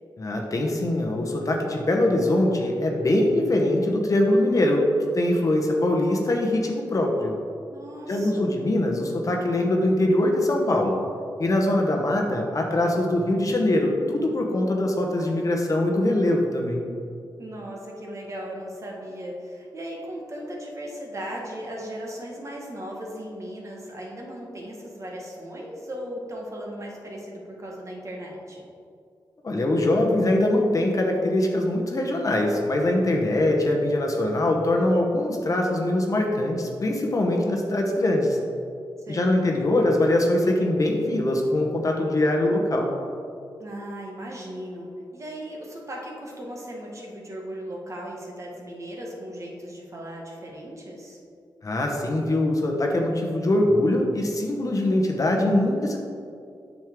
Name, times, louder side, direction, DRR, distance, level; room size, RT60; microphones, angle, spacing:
voice 1, 0.2-4.9 5.1-7.3 8.1-11.0 11.4-16.8 29.4-38.4 39.1-42.9 51.6-56.0, left 1 dB, 45° left, 1 dB, 1.0 m, -22 dB
voice 2, 7.6-8.6 17.4-28.6 39.0-39.5 43.6-51.2, equal, 40° right, -2 dB, 1.5 m, -37 dB
7.7 x 6.4 x 3.7 m, 2.4 s
wide cardioid pair, 100°, 8 cm